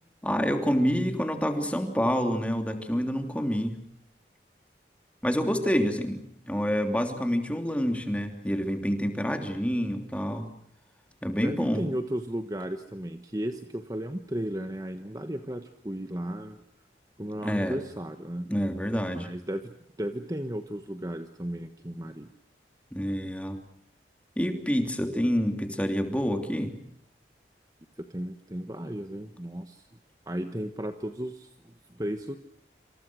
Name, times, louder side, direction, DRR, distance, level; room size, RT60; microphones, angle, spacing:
voice 1, 0.2-3.8 5.2-6.2 6.5-10.5 11.2-11.8 17.4-17.8 18.5-19.3 22.9-23.6 24.4-26.7, equal, 5° left, 5 dB, 3.1 m, -27 dB
voice 2, 11.4-16.6 17.2-18.5 19.2-22.3 28.0-29.9 30.3-32.3, right 1 dB, 20° right, 7 dB, 1.2 m, -35 dB
27.5 x 27.5 x 6.3 m, 0.66 s
head